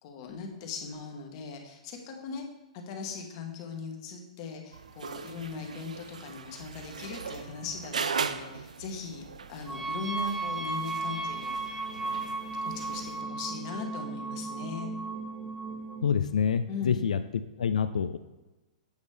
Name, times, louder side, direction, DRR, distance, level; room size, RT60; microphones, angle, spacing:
voice 1, 0.0-2.4 2.7-12.2 12.6-14.9 16.7-17.0, left 4 dB, 45° left, 3 dB, 1.3 m, -39 dB
sound 1, 4.7-13.2, right 5 dB, 80° right, 0.4 m, -39 dB
quantum harmonic spaced, 9.7-16.1, right 3 dB, 5° left, 0.8 m, -35 dB
voice 2, 16.0-17.2 17.6-18.2, left 7 dB, 80° left, 11 dB, 0.4 m, -26 dB
8.2 x 5.2 x 3.3 m, 1.1 s
hypercardioid pair, 120°, 4 cm